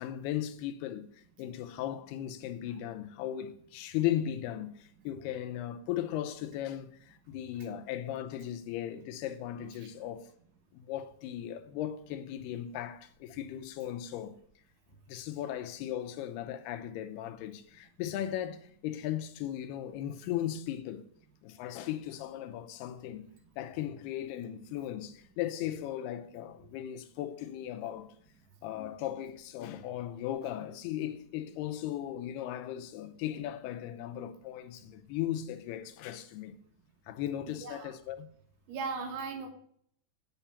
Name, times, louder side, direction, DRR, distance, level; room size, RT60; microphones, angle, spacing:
voice 1, 0.0-10.3 10.7-14.3 15.1-21.1 21.4-23.3 23.6-28.1 28.6-36.6 37.1-38.3, left 11 dB, 85° left, 2.6 m, -37 dB
voice 2, 37.5-38.0 38.7-39.5, right 4 dB, 80° right, 3.3 m, -38 dB
8.2 x 5.7 x 6.8 m
omnidirectional pair, 4.7 m